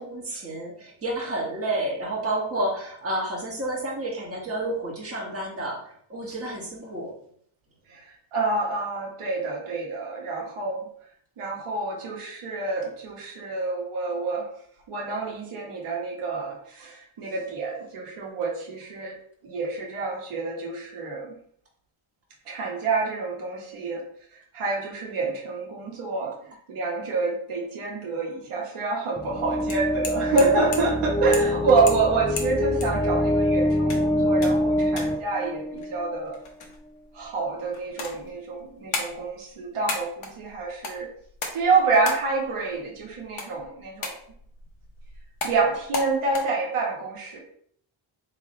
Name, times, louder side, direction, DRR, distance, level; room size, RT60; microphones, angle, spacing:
voice 1, 0.0-7.1, right 1 dB, 30° right, -3 dB, 1.4 m, -30 dB
voice 2, 7.9-10.9 11.4-14.5 14.9-19.2 19.4-21.4 22.5-24.0 24.5-36.4 37.1-41.1 41.5-44.1 45.4-47.4, right 3 dB, 85° right, -2 dB, 1.2 m, -27 dB
sound 1, 29.2-36.1, left 1 dB, 10° left, 0.4 m, -25 dB
sound 2, 29.3-46.4, left 3 dB, 75° left, 1.1 m, -38 dB
3.4 x 3.2 x 4.2 m, 0.63 s
wide cardioid pair, 125°, 49 cm